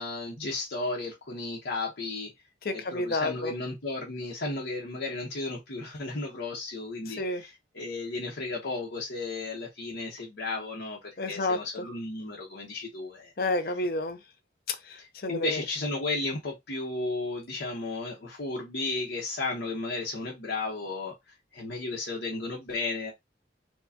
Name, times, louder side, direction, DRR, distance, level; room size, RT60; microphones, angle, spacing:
voice 1, 0.0-2.3 2.7-13.3 15.0-21.2 21.5-23.1, left 3 dB, 90° left, 1.0 m, -34 dB
voice 2, 2.6-3.5 7.2-7.4 11.2-11.6 13.4-14.2 15.2-15.6, left 2 dB, 55° left, 0.6 m, -29 dB
4.6 x 2.3 x 2.8 m
head